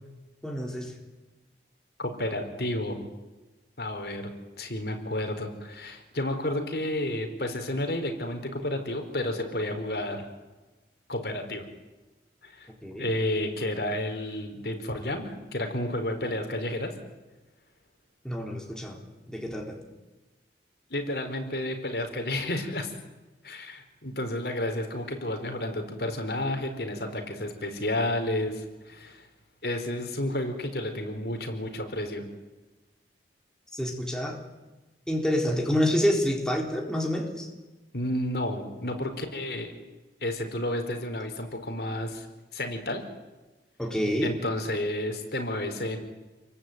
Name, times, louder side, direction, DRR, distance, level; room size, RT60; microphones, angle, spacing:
voice 1, 0.4-0.9 12.8-13.1 18.2-19.0 19.3-19.8 33.7-34.4 35.1-37.5 43.8-44.3, equal, 5° left, 0 dB, 3.9 m, -27 dB
voice 2, 2.0-3.0 3.8-4.3 4.6-10.2 11.1-11.6 12.4-12.7 13.0-16.9 20.9-22.9 23.4-29.3 29.6-32.2 37.9-39.7 40.2-42.3 42.5-43.0 44.2-46.0, left 1 dB, 60° left, 6 dB, 4.3 m, -31 dB
28.0 x 23.0 x 9.2 m, 1.2 s
head